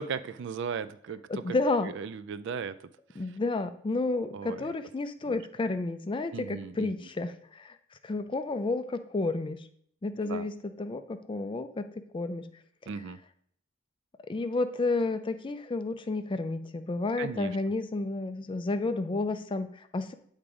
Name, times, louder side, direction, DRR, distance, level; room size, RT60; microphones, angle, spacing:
voice 1, 0.0-1.6 1.9-3.2 4.3-4.7 5.3-5.4 6.3-6.9 10.2-10.5 12.9-13.2 17.2-17.6, right 6 dB, 55° right, 14 dB, 0.3 m, -37 dB
voice 2, 1.3-1.9 3.2-9.7 10.0-12.6 14.2-20.1, left 3 dB, 25° left, 10 dB, 0.4 m, -31 dB
8.6 x 3.7 x 4.8 m, 0.66 s
head